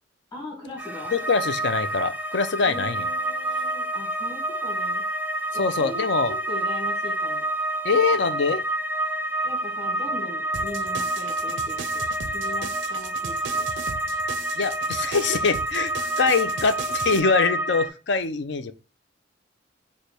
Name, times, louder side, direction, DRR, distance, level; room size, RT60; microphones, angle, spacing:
voice 1, 0.3-1.2 2.7-5.0 5.5-7.5 9.4-13.7, left 2 dB, 20° left, 1.5 m, -39 dB
sound 1, 0.8-17.9, right 1 dB, 10° right, 0.4 m, -28 dB
voice 2, 1.1-3.0 5.6-6.3 7.8-8.6 14.6-18.7, left 4 dB, 65° left, 0.5 m, -24 dB
sound 2, 10.5-17.2, right 7 dB, 75° right, 0.4 m, -37 dB
4.9 x 2.2 x 4.2 m
head